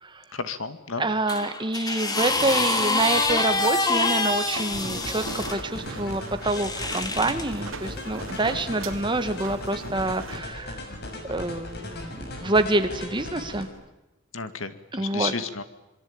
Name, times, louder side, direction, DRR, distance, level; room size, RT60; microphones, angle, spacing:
voice 1, 0.3-1.0 8.3-8.6 14.3-15.6, left 5 dB, 75° left, 11 dB, 2.1 m, -33 dB
voice 2, 1.0-10.8 11.3-13.7 14.9-15.3, right 2 dB, 25° right, 9 dB, 1.9 m, -27 dB
sound 1, 1.3-5.6 6.4-7.5 8.4-8.5, left 3 dB, 20° left, 2.5 m, -26 dB
sound 2, 2.4-10.4, right 3 dB, 70° right, 3.1 m, -40 dB
sound 3, 4.7-13.6, left 1 dB, 55° left, 5.9 m, -38 dB
26.5 x 23.0 x 8.8 m, 0.98 s
head